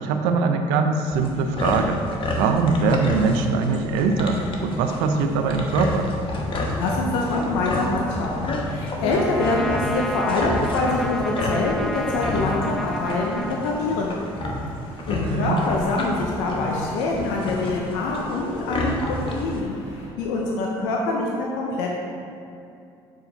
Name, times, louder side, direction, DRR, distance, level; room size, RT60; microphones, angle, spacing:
voice 1, 0.0-2.0 2.4-6.1 15.1-15.6, right 4 dB, 85° right, 6 dB, 0.5 m, -22 dB
sound 1, 1.1-19.6, left 2 dB, 45° left, 1.1 m, -30 dB
sound 2, 4.2-20.1, left 1 dB, 70° left, 1.4 m, -44 dB
voice 2, 6.8-14.2 15.1-19.7 20.2-21.9, left 2 dB, 90° left, -2 dB, 0.7 m, -25 dB
Trumpet, 9.1-14.4, equal, ahead, 0.4 m, -32 dB
7.1 x 4.8 x 3.9 m, 2.6 s
supercardioid pair, 70°, 12 cm